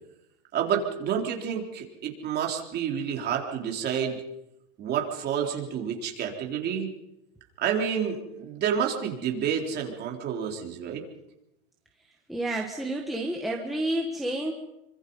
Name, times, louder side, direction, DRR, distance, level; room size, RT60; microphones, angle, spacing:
voice 1, 0.5-4.2 4.8-6.9 7.6-11.0, right 8 dB, 25° right, 1 dB, 3.7 m, -29 dB
voice 2, 12.3-14.5, right 1 dB, ahead, -1 dB, 1.6 m, -30 dB
27.5 x 24.5 x 5.5 m, 0.91 s
supercardioid pair, 155°, 38 cm